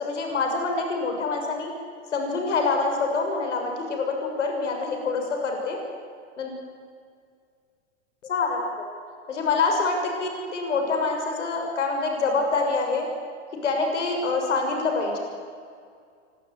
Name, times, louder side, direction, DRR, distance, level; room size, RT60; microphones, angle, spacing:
voice 1, 0.0-1.7 2.1-5.8 6.4-6.6 8.2-8.8 9.3-13.1 13.6-15.2, left 3 dB, 85° left, 3 dB, 6.5 m, -26 dB
27.0 x 23.5 x 9.3 m, 2.2 s
hypercardioid pair, 130°, 35 cm